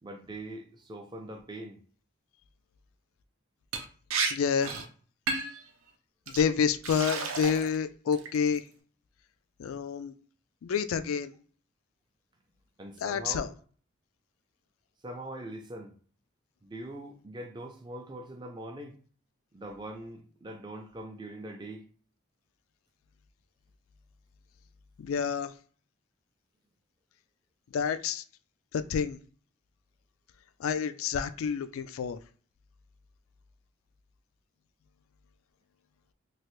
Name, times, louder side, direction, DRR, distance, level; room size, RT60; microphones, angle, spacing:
voice 1, 0.0-1.8 12.8-13.5 15.0-15.9 16.6-19.0 19.5-21.9, right 1 dB, 20° right, 0.4 m, -42 dB
Liquid, 3.7-3.8 4.1-4.3 4.6-4.9 5.3-5.6 6.3-6.4 6.8-7.7 8.1-8.6, right 4 dB, 85° right, 0.6 m, -32 dB
voice 2, 4.3-4.7 6.3-8.6 9.6-10.1 10.6-11.3 13.0-13.5 25.0-25.5 27.7-28.2 28.7-29.2 30.6-32.2, left 6 dB, 85° left, 0.3 m, -29 dB
3.1 x 2.4 x 3.1 m
head